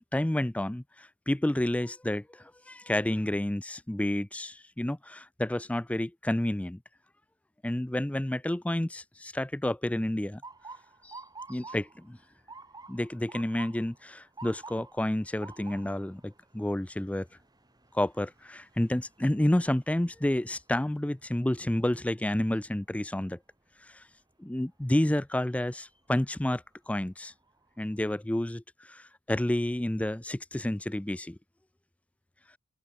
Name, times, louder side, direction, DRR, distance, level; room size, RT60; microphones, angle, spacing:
voice 1, 0.0-6.8 7.6-10.4 11.0-11.2 11.5-12.2 12.9-17.3 17.9-23.4 23.8-24.1 24.4-27.3 27.8-31.4, left 1 dB, 5° left, 0.4 m, -30 dB
Motor vehicle (road) / Siren, 10.4-22.3 22.8-23.2 24.0-24.3 26.2-26.4 26.9-27.0 27.4-28.1, right 3 dB, 20° right, 3.7 m, -50 dB
head